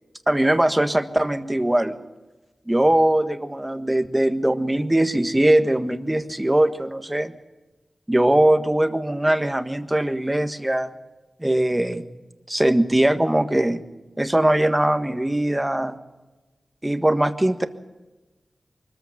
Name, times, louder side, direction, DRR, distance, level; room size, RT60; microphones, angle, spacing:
voice 1, 0.3-2.0 2.7-7.3 8.1-10.9 11.4-12.1 12.5-13.8 14.2-16.0 16.8-17.7, right 1 dB, 15° right, 9 dB, 1.5 m, -21 dB
24.0 x 14.5 x 9.0 m, 1.1 s
wide cardioid pair, 95°, 0 cm